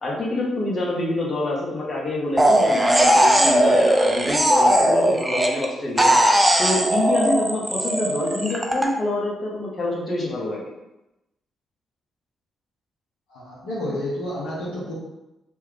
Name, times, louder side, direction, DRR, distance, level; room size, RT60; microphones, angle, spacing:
voice 1, 0.0-6.1 6.6-10.6, left 2 dB, 40° left, -5 dB, 1.3 m, -26 dB
sound 1, 2.4-5.7 6.0-8.9, right 1 dB, 15° right, 0.6 m, -18 dB
voice 2, 13.3-14.9, left 1 dB, 80° left, -8 dB, 0.8 m, -30 dB
3.0 x 2.4 x 3.5 m, 0.94 s
hypercardioid pair, 45°, 0 cm